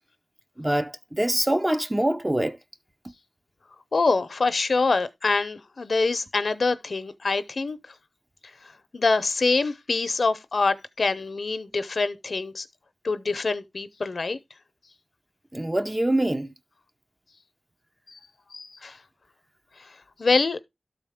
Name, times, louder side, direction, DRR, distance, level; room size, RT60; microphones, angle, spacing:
voice 1, 0.6-2.6 15.5-16.5, right 1 dB, 15° right, 0.7 m, -24 dB
voice 2, 3.9-7.8 8.9-12.7 13.0-14.4 18.1-18.2 18.5-19.0 19.8-19.9 20.2-20.6, left 3 dB, 70° left, 0.7 m, -25 dB
12.5 x 4.1 x 3.5 m
wide cardioid pair, 95°, 0 cm